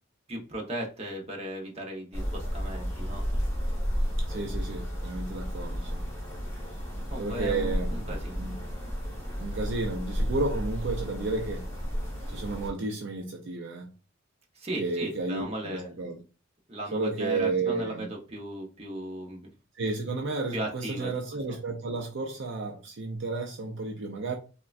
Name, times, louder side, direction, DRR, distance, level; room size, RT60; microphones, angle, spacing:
voice 1, 0.3-3.2 7.1-8.4 14.5-15.9 16.7-19.5 20.5-21.1 21.5-21.6, right 1 dB, 30° right, 0.8 m, -36 dB
sound 1, 2.1-12.7, equal, 15° left, 1.1 m, -32 dB
voice 2, 4.3-6.1 7.2-8.6 9.4-11.7 12.3-13.9 14.8-16.2 16.9-18.1 19.8-24.4, right 3 dB, 60° right, 0.5 m, -32 dB
3.6 x 2.1 x 2.4 m
head